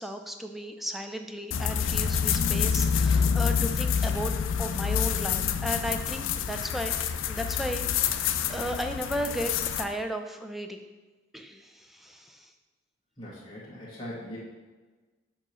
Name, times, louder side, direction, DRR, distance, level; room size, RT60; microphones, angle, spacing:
voice 1, 0.0-4.3 4.6-6.9 7.3-10.8 11.3-12.5, equal, ahead, 5 dB, 0.3 m, -35 dB
sound 1, 1.5-9.8, left 7 dB, 85° left, 0.4 m, -27 dB
voice 2, 13.2-14.4, left 1 dB, 25° left, -8 dB, 1.5 m, -40 dB
6.8 x 3.1 x 5.4 m, 1.3 s
head